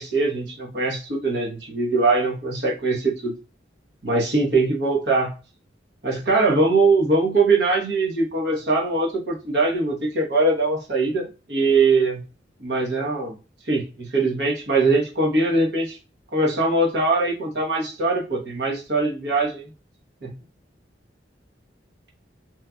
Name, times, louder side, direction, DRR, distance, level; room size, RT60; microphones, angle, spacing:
voice 1, 0.0-3.3 4.0-5.4 6.0-12.2 12.6-13.3 13.7-16.0 16.3-19.7 20.2-20.3, right 3 dB, 65° right, -1 dB, 1.1 m, -22 dB
2.8 x 2.4 x 2.4 m, 0.31 s
head